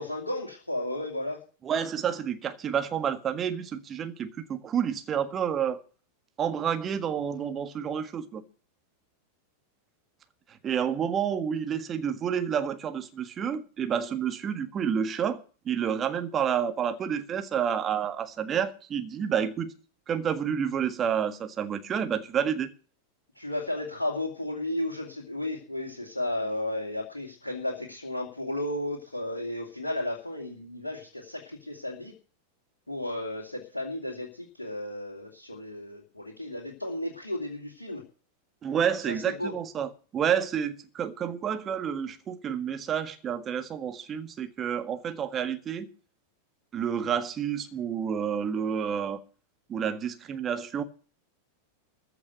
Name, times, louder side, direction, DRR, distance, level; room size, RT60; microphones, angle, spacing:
voice 1, 0.0-1.4 23.3-32.1 32.9-38.0 39.1-39.5, left 1 dB, 80° left, 2.5 m, -33 dB
voice 2, 1.6-5.8 6.4-8.4 10.6-19.7 20.1-22.7 38.6-45.9 46.7-49.2 49.7-50.8, right 8 dB, 25° right, 1.6 m, -29 dB
14.5 x 5.9 x 9.0 m
figure-of-eight pair, 90°, 0 cm